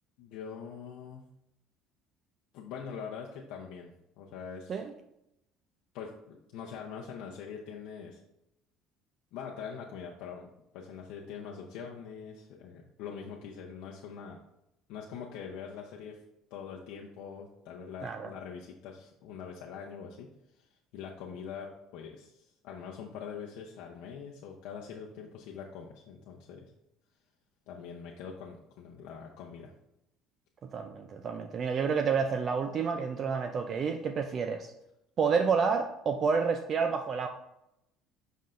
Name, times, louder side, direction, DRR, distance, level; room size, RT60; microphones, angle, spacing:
voice 1, 0.2-1.2 2.5-3.9 4.2-4.8 5.9-8.2 9.3-14.4 14.9-16.2 16.5-20.3 20.6-26.7 27.7-29.7, left 6 dB, 65° left, -1 dB, 0.7 m, -43 dB
voice 2, 30.7-34.7 35.2-37.3, right 5 dB, 30° right, 6 dB, 0.3 m, -29 dB
7.6 x 5.4 x 2.5 m, 0.85 s
cardioid pair, 175°, 0 cm